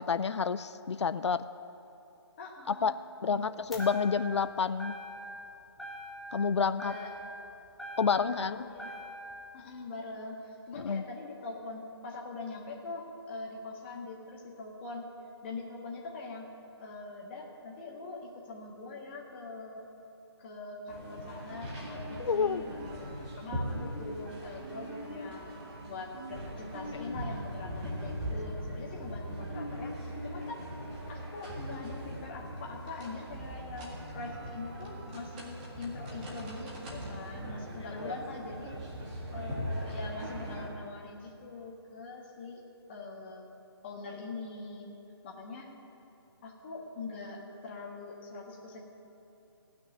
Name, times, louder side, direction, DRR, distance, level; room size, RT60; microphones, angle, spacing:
voice 1, 0.0-1.4 2.8-2.9 3.2-4.9 6.3-6.9 8.0-8.6 10.8-11.0 22.3-22.6 38.0-38.1, left 5 dB, 85° left, 13 dB, 0.5 m, -29 dB
voice 2, 2.4-3.0 3.3-3.5 6.6-7.1 8.1-9.0 9.5-15.1 15.4-16.5 16.8-19.9 20.4-30.6 31.1-38.7 39.3-42.6 42.9-43.5 43.8-44.9 45.2-45.7 46.4-48.8, left 3 dB, 25° left, -1 dB, 1.6 m, -43 dB
sound 1, 3.7-4.5 4.8-5.5 5.8-6.5 6.8-8.4 8.8-9.4, equal, ahead, 0.5 m, -43 dB
sound 2, 20.9-40.7, equal, 20° right, 1.8 m, -40 dB
16.0 x 6.1 x 9.2 m, 2.9 s
hypercardioid pair, 165°, 14 cm